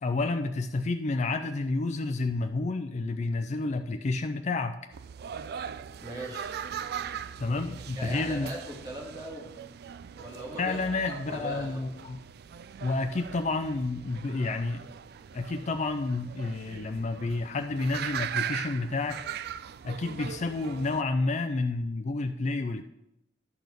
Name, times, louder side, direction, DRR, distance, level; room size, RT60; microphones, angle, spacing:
voice 1, 0.0-4.8 7.4-8.5 10.6-12.2 12.8-14.9 15.3-19.2 19.8-22.8, left 3 dB, 40° left, 7 dB, 0.4 m, -30 dB
sound 1, 4.9-21.0, right 8 dB, 60° right, 0.3 m, -40 dB
voice 2, 6.0-6.6 7.5-7.6 8.0-9.5 10.1-10.8 11.3-12.0, right 1 dB, 20° right, -2 dB, 2.2 m, -39 dB
12.0 x 4.2 x 6.6 m, 0.88 s
head